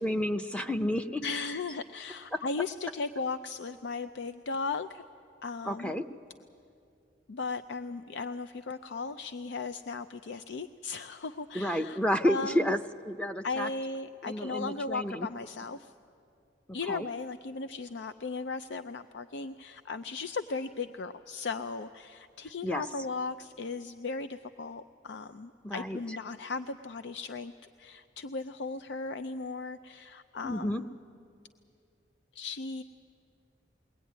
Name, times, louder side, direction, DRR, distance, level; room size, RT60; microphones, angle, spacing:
voice 1, 0.0-1.2 2.3-2.4 5.7-6.0 11.5-12.8 13.0-13.7 14.2-15.3 16.9-17.1 22.6-22.8 25.6-26.0 30.4-30.8, equal, 5° left, 7 dB, 0.7 m, -30 dB
voice 2, 1.2-5.0 5.4-5.9 7.3-12.7 13.4-15.9 16.7-27.5 27.8-30.9 32.3-32.8, left 4 dB, 85° left, 10 dB, 0.5 m, -37 dB
21.5 x 18.5 x 9.4 m, 2.5 s
head